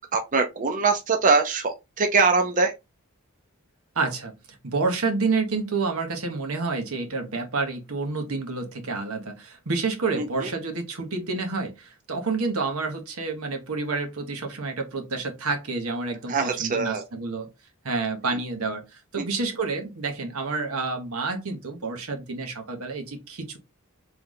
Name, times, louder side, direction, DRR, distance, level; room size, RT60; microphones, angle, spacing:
voice 1, 0.1-2.7 10.1-10.5 16.3-17.0 18.3-18.4 19.2-19.3, right 4 dB, 35° right, 0.5 m, -23 dB
voice 2, 3.9-4.3 4.6-17.5 17.8-23.6, right 3 dB, 80° right, 1.1 m, -29 dB
3.4 x 3.1 x 3.8 m
head